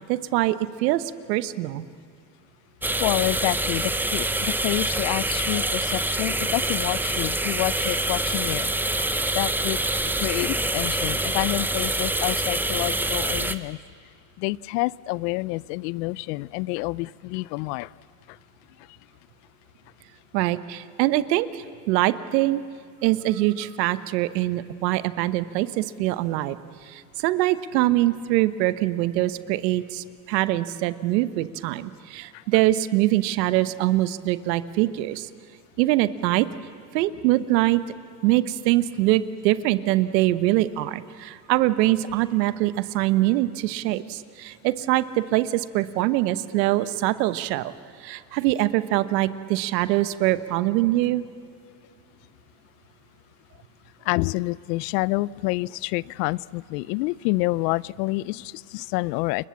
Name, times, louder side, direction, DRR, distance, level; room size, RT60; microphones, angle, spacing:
voice 1, 0.1-1.0 1.3-1.8 20.3-22.6 23.0-26.6 26.9-35.3 35.8-36.5 36.9-37.8 38.2-47.7 48.0-51.2, right 16 dB, 80° right, 13 dB, 1.1 m, -23 dB
sound 1, 2.8-13.6, right 2 dB, 5° right, 0.7 m, -26 dB
voice 2, 3.0-8.7 9.3-9.8 10.0-13.8 14.4-17.9 18.3-18.4 32.3-32.4 54.0-59.5, left 21 dB, 75° left, 22 dB, 0.6 m, -28 dB
29.5 x 22.0 x 7.2 m, 2.1 s
supercardioid pair, 105°, 49 cm